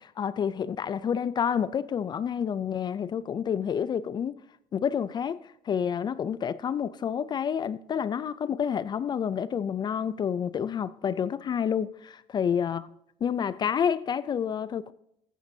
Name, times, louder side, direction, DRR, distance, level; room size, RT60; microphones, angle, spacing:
voice 1, 0.0-4.4 4.7-12.9 13.2-14.9, left 8 dB, 35° left, 0.4 m, -29 dB
14.0 x 8.9 x 2.7 m
cardioid pair, 125°, 12 cm